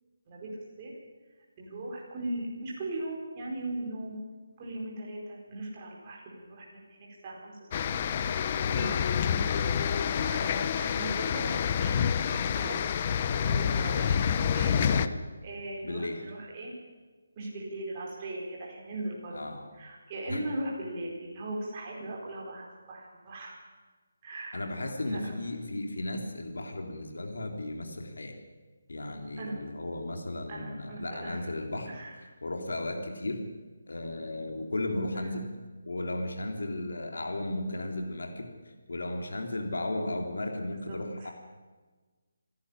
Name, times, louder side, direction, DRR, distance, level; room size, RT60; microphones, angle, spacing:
voice 1, 0.3-0.9 1.6-4.2 4.6-7.6 7.9-8.0 8.3-14.2 14.5-15.0 15.4-16.7 17.4-19.4 19.7-23.6 24.2-24.6 25.1-25.2 29.4-29.6 30.5-31.5 31.9-32.2 35.1-35.4 40.9-41.3, right 1 dB, 20° right, -3 dB, 4.4 m, -39 dB
sound 1, 7.7-15.1, left 7 dB, 20° left, 0.6 m, -28 dB
voice 2, 15.8-16.2 19.3-19.7 20.3-20.4 24.5-28.4 28.9-31.9 32.4-33.4 33.9-35.5 35.8-38.5 38.9-41.3, left 1 dB, 80° left, 4 dB, 3.4 m, -35 dB
27.5 x 11.5 x 9.9 m, 1.3 s
hypercardioid pair, 175°, 0 cm